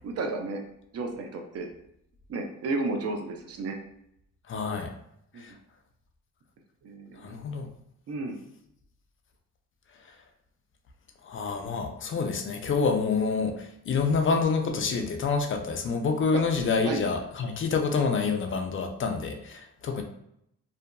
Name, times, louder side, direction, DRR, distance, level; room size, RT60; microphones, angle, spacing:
voice 1, 0.0-0.6 0.9-1.7 2.3-3.8 5.3-5.6 6.8-7.3 8.1-8.4 16.3-16.4 16.9-17.0, right 3 dB, 55° right, 3 dB, 0.5 m, -32 dB
voice 2, 4.5-4.9 5.4-5.5 7.2-7.7 11.2-20.0, left 4 dB, 45° left, 4 dB, 0.4 m, -27 dB
2.6 x 2.5 x 2.2 m, 0.75 s
cardioid pair, 90°, 30 cm